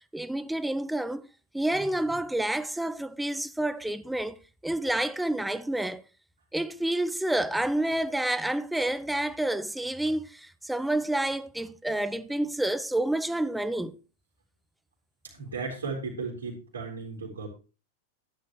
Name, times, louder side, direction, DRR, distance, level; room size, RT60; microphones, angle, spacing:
voice 1, 0.1-1.3 1.5-4.4 4.6-6.0 6.5-14.0, right 1 dB, 5° right, 0.8 m, -29 dB
voice 2, 15.2-17.5, right 4 dB, 70° right, 3.7 m, -35 dB
13.0 x 10.5 x 3.1 m
figure-of-eight pair, 90°, 0 cm